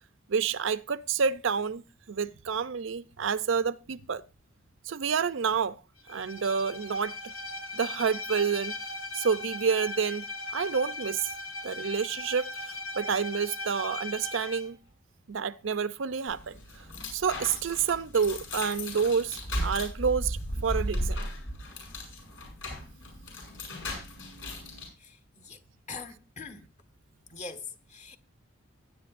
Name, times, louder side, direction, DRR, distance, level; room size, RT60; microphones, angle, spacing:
voice 1, 0.3-1.8 2.1-4.2 4.9-5.8 6.1-7.3 7.7-8.8 9.1-11.3 11.6-14.8 15.3-16.8 17.1-21.2, right 6 dB, 65° right, 0.5 m, -29 dB
Bowed string instrument, 6.1-14.7, left 2 dB, 85° left, 1.5 m, -38 dB
sound 1, 16.3-24.9, equal, 65° left, 6.9 m, -36 dB
voice 2, 25.0-25.6 25.9-26.7 27.3-28.2, left 4 dB, 35° left, 1.3 m, -43 dB
20.0 x 10.0 x 2.5 m
head